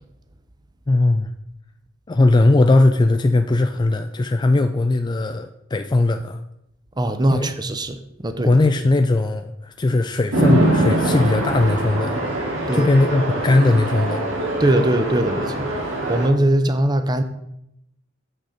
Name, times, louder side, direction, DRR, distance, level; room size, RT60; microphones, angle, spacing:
voice 1, 0.9-1.3 2.1-6.4 7.3-7.5 8.4-12.2 12.7-14.2, left 2 dB, 20° left, 0.3 m, -18 dB
voice 2, 7.0-8.6 12.7-12.9 14.6-17.2, right 1 dB, 20° right, 0.7 m, -21 dB
Chatter / Traffic noise roadway noise / Train, 10.3-16.3, right 1 dB, 80° right, 2.4 m, -23 dB
7.6 x 6.6 x 5.0 m
head